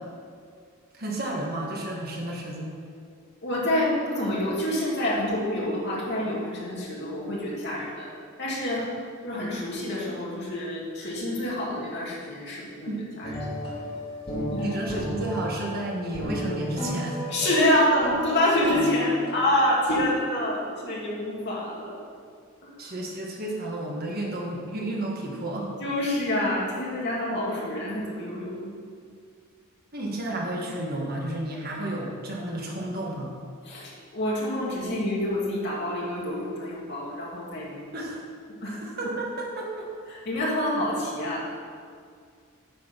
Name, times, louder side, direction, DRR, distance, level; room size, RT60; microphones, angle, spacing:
voice 1, 0.9-2.7 12.9-13.0 14.6-17.2 22.8-25.7 29.9-33.3 37.9-38.2 38.6-39.9, right 1 dB, 45° right, -2 dB, 1.5 m, -32 dB
voice 2, 3.4-8.1 8.4-8.9 9.2-12.9 13.2-13.3 14.5-14.7 17.3-22.0 22.6-22.7 25.8-28.5 33.6-37.9 38.6-38.8 40.1-41.6, left 1 dB, 50° left, -5 dB, 2.5 m, -27 dB
sound 1, 13.2-20.0, left 1 dB, 25° left, 2.4 m, -33 dB
9.5 x 6.1 x 6.1 m, 2.2 s
head